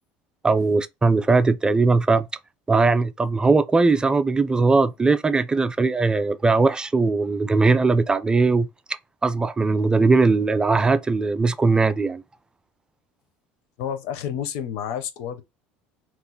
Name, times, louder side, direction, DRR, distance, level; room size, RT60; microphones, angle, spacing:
voice 1, 0.4-2.3 2.7-8.7 9.2-12.2, right 3 dB, 15° right, 0.3 m, -19 dB
voice 2, 13.8-15.4, left 9 dB, 70° left, 0.6 m, -30 dB
3.0 x 2.9 x 2.2 m
supercardioid pair, 90°, 5 cm